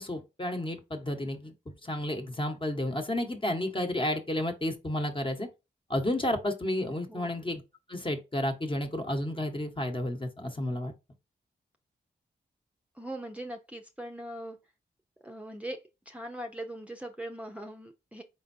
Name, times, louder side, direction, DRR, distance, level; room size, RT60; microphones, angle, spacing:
voice 1, 0.0-1.5 1.8-5.5 5.9-7.6 7.9-10.9, left 1 dB, 30° left, 1.3 m, -31 dB
voice 2, 12.9-14.6 15.2-18.2, right 1 dB, 5° right, 0.8 m, -40 dB
4.5 x 3.9 x 2.7 m
cardioid pair, 50°, 18 cm